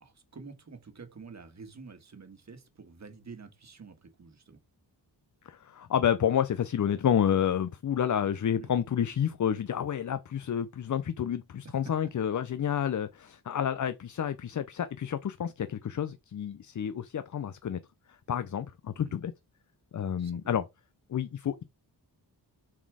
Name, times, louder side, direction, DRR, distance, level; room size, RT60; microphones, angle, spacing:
voice 1, 0.0-4.6 8.2-8.7 11.6-11.9 12.3-12.4 19.0-19.2 20.2-20.6, right 4 dB, 40° right, 1.6 m, -49 dB
voice 2, 5.5-17.8 18.3-19.3 19.9-20.7 21.1-21.6, left 9 dB, 45° left, 0.6 m, -29 dB
7.4 x 4.2 x 4.8 m
wide cardioid pair, 110°, 41 cm